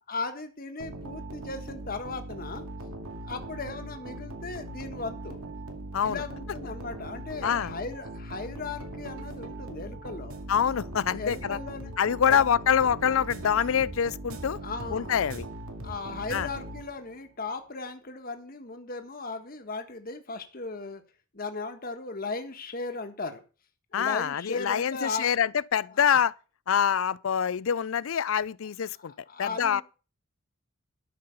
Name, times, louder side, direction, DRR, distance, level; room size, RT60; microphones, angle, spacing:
voice 1, 0.1-2.7 3.2-5.4 6.0-10.3 11.2-11.9 12.3-12.4 14.6-15.2 15.8-21.0 21.3-23.4 23.9-25.4 29.3-29.8, left 3 dB, 45° left, 1.3 m, -37 dB
sound 1, 0.8-17.2, right 1 dB, 90° right, 2.2 m, -40 dB
voice 2, 7.4-7.7 10.5-11.6 12.0-14.6 14.9-15.5 16.3-16.5 23.9-26.3 26.7-29.1 29.4-29.8, left 8 dB, 70° left, 0.4 m, -25 dB
12.5 x 5.7 x 6.8 m
head